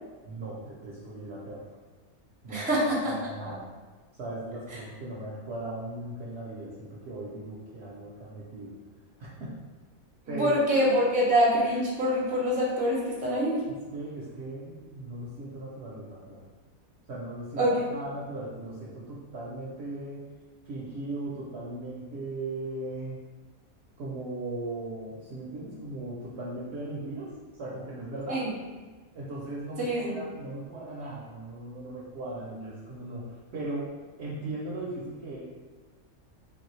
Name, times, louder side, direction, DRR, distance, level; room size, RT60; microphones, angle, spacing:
voice 1, 0.2-1.6 2.4-2.7 3.1-3.7 4.1-8.8 9.2-9.5 10.3-10.8 13.9-16.4 17.1-20.3 20.6-23.2 24.0-28.5 29.1-35.4, right 2 dB, 65° right, -5 dB, 0.7 m, -38 dB
voice 2, 2.5-3.1 3.4-3.5 4.7-4.8 10.3-13.7 17.6-17.9 28.3-28.5 29.8-30.2, equal, 10° right, -5 dB, 0.4 m, -25 dB
3.3 x 2.6 x 3.1 m, 1.3 s
omnidirectional pair, 1.5 m